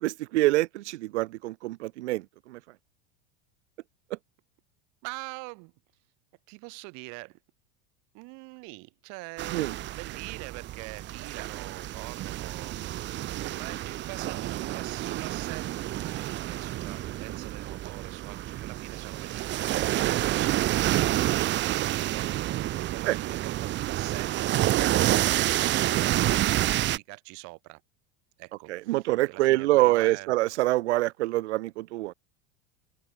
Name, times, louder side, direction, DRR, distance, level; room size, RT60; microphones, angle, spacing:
voice 1, 0.0-2.6 9.5-9.7 21.2-21.4 23.1-23.2 28.7-32.1, right 17 dB, 85° right, 1.1 m, -26 dB
voice 2, 5.0-5.7 6.5-7.4 8.1-12.8 13.0-22.4 22.7-27.8 28.4-30.3, right 31 dB, 60° right, 4.4 m, -43 dB
sound 1, 9.4-27.0, right 14 dB, 35° right, 0.7 m, -29 dB
supercardioid pair, 120°, 33 cm